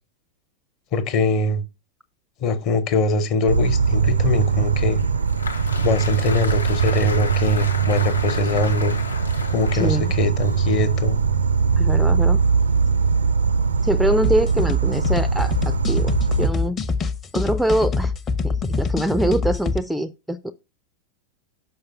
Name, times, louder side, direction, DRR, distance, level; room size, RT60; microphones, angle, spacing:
voice 1, 0.9-1.6 2.4-5.0 5.8-9.0 9.5-11.2, left 3 dB, 40° left, 1.0 m, -22 dB
Insect, 3.5-16.5, right 6 dB, 75° right, 0.4 m, -21 dB
Applause, 5.0-11.3, left 3 dB, 75° left, 0.7 m, -34 dB
voice 2, 9.7-10.1 11.8-12.4 13.8-16.8 17.3-18.1 18.4-20.5, right 1 dB, ahead, 0.4 m, -24 dB
sound 1, 14.2-19.8, left 4 dB, 25° left, 0.7 m, -25 dB
5.8 x 5.1 x 5.4 m
figure-of-eight pair, 90°, 0 cm